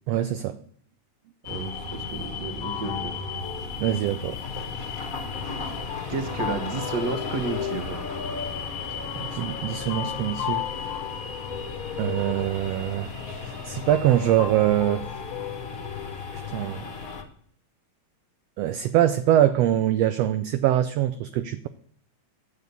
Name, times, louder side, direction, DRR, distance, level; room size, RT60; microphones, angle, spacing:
voice 1, 0.1-0.6 3.8-4.4 9.1-10.6 12.0-13.1 13.4-15.1 16.3-16.9 18.6-21.7, right 12 dB, 75° right, 11 dB, 1.5 m, -23 dB
sound 1, 1.4-17.2, left 4 dB, 40° left, 1.5 m, -35 dB
voice 2, 1.5-3.2 6.1-8.0, right 5 dB, 50° right, 8 dB, 1.3 m, -32 dB
sound 2, 2.6-17.3, left 11 dB, 80° left, 2.1 m, -37 dB
12.0 x 7.5 x 6.8 m, 0.62 s
omnidirectional pair, 3.3 m